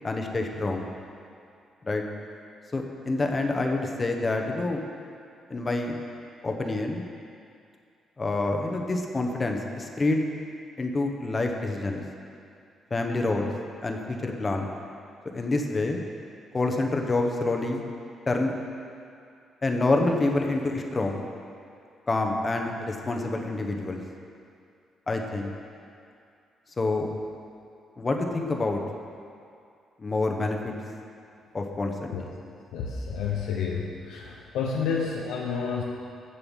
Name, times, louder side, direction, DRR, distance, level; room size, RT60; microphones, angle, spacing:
voice 1, 0.0-0.9 1.8-2.0 2.7-4.8 5.5-6.0 6.4-7.0 8.2-10.2 10.8-12.0 12.9-13.5 13.8-14.7 15.3-16.0 16.5-17.8 18.3-18.5 19.6-21.2 22.1-24.0 25.1-25.5 26.8-27.1 28.0-28.8 30.0-30.7 31.5-32.1, left 2 dB, 30° left, 2 dB, 1.0 m, -27 dB
voice 2, 32.7-35.8, left 6 dB, 90° left, -3 dB, 0.8 m, -30 dB
7.1 x 6.8 x 7.3 m, 2.4 s
cardioid pair, 90°, 0 cm